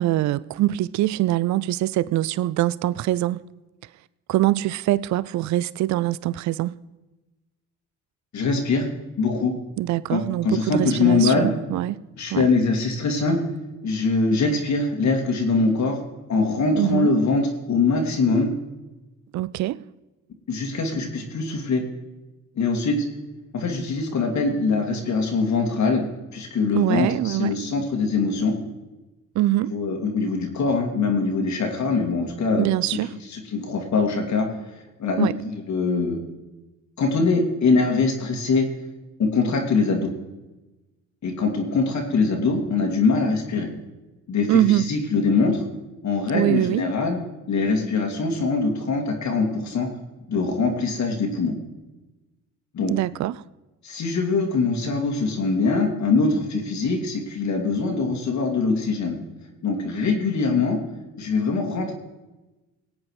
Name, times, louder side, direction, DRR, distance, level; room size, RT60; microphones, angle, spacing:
voice 1, 0.0-3.4 4.3-6.7 9.8-11.9 12.3-12.5 16.7-17.1 19.3-19.8 26.7-27.6 29.4-29.7 32.6-33.1 35.2-35.3 44.5-44.9 46.3-46.8 52.9-53.4, right 15 dB, 60° right, 0.5 m, -23 dB
voice 2, 8.3-8.9 9.2-9.5 10.1-11.5 12.2-13.4 13.8-16.0 16.3-18.5 20.5-21.8 22.6-23.1 23.5-26.0 26.3-28.5 29.7-33.0 33.3-34.5 35.0-36.2 37.0-38.7 39.2-40.1 41.2-43.7 44.3-45.6 46.0-47.2 47.5-49.9 50.3-51.5 52.7-53.0 53.8-59.2 59.6-60.8 61.2-61.9, left 4 dB, 55° left, 2.5 m, -23 dB
17.5 x 8.6 x 4.8 m
supercardioid pair, 75°, 33 cm